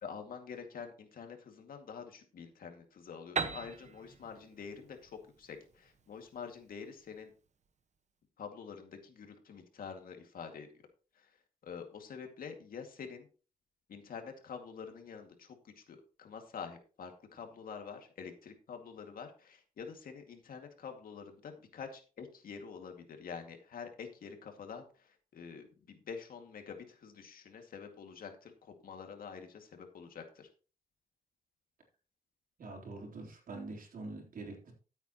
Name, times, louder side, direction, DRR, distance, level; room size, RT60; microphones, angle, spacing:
voice 1, 0.0-7.3 8.4-10.8 11.2-11.3 11.6-13.3 13.9-30.5, left 6 dB, 80° left, 4 dB, 2.2 m, -47 dB
Piano, 3.4-7.0, right 5 dB, 55° right, 1.3 m, -40 dB
voice 2, 32.6-34.7, right 2 dB, 70° right, 0 dB, 3.8 m, -45 dB
14.0 x 8.1 x 3.0 m, 0.37 s
cardioid pair, 75°, 15 cm